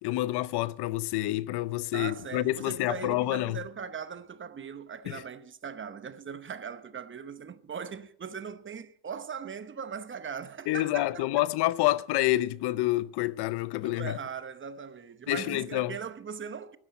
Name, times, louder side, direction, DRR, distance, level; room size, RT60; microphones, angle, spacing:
voice 1, 0.0-3.6 5.1-5.2 10.7-14.2 15.3-16.0, left 16 dB, 75° left, 0.6 m, -28 dB
voice 2, 1.9-11.4 13.8-16.8, right 6 dB, 30° right, 0.9 m, -39 dB
12.5 x 9.9 x 7.5 m
cardioid pair, 105°, 39 cm